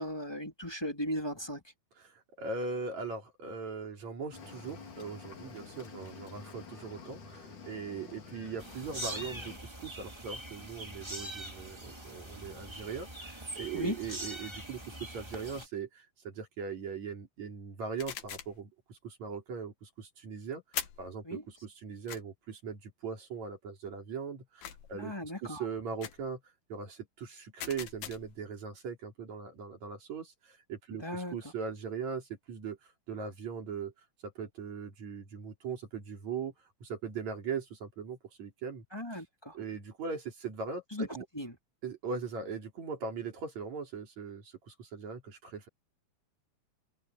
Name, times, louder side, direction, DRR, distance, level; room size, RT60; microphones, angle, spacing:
voice 1, 0.0-1.6 13.7-14.0 21.2-21.4 25.0-25.6 30.9-31.3 38.9-39.6 40.9-41.1 41.3-41.6, equal, 10° left, 2.7 m, -37 dB
voice 2, 2.0-20.6 21.0-26.4 26.7-32.8 33.1-33.9 34.2-36.5 36.8-38.8 39.1-39.2 39.5-41.2 41.8-45.7, right 5 dB, 55° right, 4.5 m, -40 dB
Cricket / Waves surf, 4.3-9.6, left 4 dB, 60° left, 5.2 m, -48 dB
sound 1, 8.6-15.7, right 1 dB, 10° right, 2.0 m, -43 dB
sound 2, 18.0-18.6 20.7-21.1 22.1-22.2 24.6-25.0 26.0-26.3 27.6-28.4, left 10 dB, 90° left, 3.4 m, -41 dB
omnidirectional pair, 4.0 m